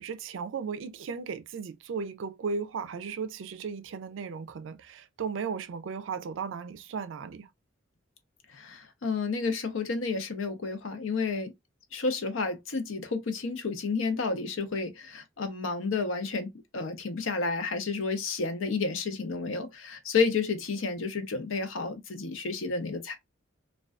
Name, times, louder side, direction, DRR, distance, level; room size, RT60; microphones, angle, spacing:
voice 1, 0.0-7.5, right 5 dB, 70° right, 0.4 m, -36 dB
voice 2, 8.5-11.5 11.9-23.2, left 4 dB, 80° left, 0.6 m, -31 dB
2.4 x 2.3 x 2.2 m
head